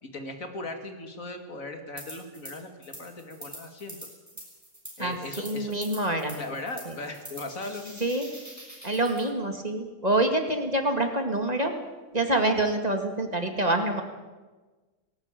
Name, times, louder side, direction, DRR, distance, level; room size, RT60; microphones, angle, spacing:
voice 1, 0.0-4.0 5.0-5.7 6.4-8.0, left 2 dB, 75° left, 5 dB, 2.7 m, -38 dB
sound 1, 2.0-2.5 2.8-9.3, equal, 10° right, 6.2 m, -44 dB
voice 2, 5.0-6.4 6.9-7.0 8.0-8.3 8.8-11.7 12.1-14.0, right 1 dB, 30° right, 5 dB, 2.1 m, -26 dB
19.0 x 17.5 x 9.0 m, 1.3 s
omnidirectional pair, 1.4 m